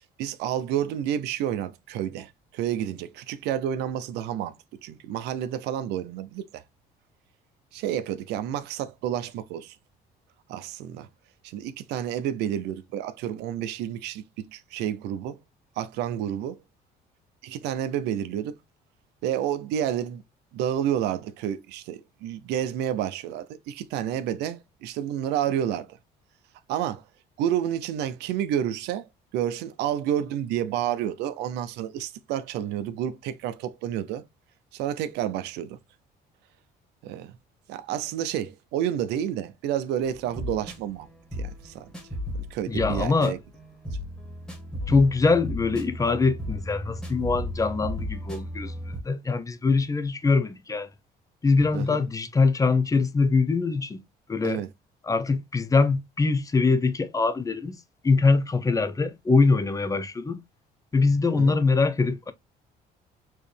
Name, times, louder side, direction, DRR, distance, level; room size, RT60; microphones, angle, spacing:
voice 1, 0.0-4.5 4.8-6.6 7.7-9.8 10.5-11.1 11.4-15.4 15.8-16.6 17.4-18.6 19.2-20.2 20.5-26.0 26.7-27.0 27.4-29.1 29.3-34.2 34.7-35.8 37.0-37.4 37.7-41.1 41.4-41.9 42.4-43.4 51.7-52.0 54.4-54.7 61.3-61.6, right 10 dB, 90° right, 0.6 m, -30 dB
sound 1, 40.0-49.0, left 1 dB, 5° left, 1.8 m, -35 dB
voice 2, 42.7-43.4 44.9-50.9 51.4-54.0 54.3-54.6 55.0-57.8 58.0-60.4 60.9-62.3, left 4 dB, 20° left, 0.7 m, -23 dB
4.6 x 3.0 x 3.3 m
cardioid pair, 110°, 17 cm